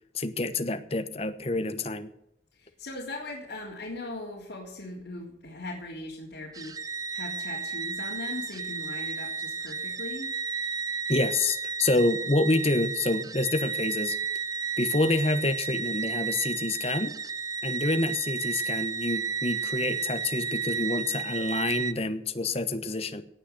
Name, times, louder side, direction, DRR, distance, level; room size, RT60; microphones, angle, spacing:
voice 1, 0.1-2.1 11.1-14.2 14.8-17.1 17.6-23.2, left 2 dB, 35° left, 10 dB, 1.0 m, -27 dB
voice 2, 2.6-10.3, left 2 dB, 75° left, -6 dB, 3.4 m, -39 dB
sound 1, 6.5-21.9, right 5 dB, 20° right, 0.4 m, -32 dB
18.0 x 6.5 x 7.8 m, 0.77 s
head